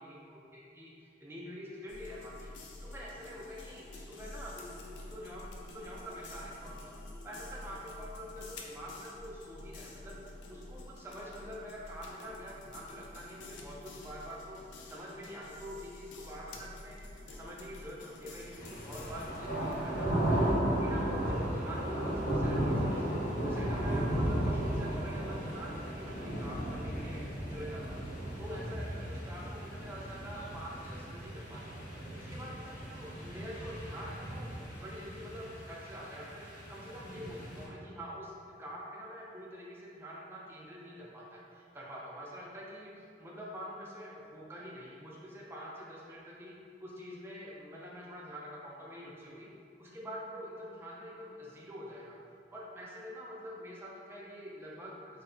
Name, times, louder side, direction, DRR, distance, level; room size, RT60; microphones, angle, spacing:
voice 1, 0.0-2.5 2.8-6.9 7.2-10.2 10.5-17.0 17.3-20.4 20.7-23.2 23.4-27.2 27.5-28.0 28.4-31.8 32.2-49.5 49.8-52.2 52.5-55.2, equal, 15° right, -5 dB, 0.3 m, -46 dB
sound 1, 1.9-19.8, left 2 dB, 80° left, 0.3 m, -49 dB
sound 2, 18.6-37.7, right 1 dB, 55° left, 0.7 m, -35 dB
2.7 x 2.0 x 2.5 m, 2.5 s
head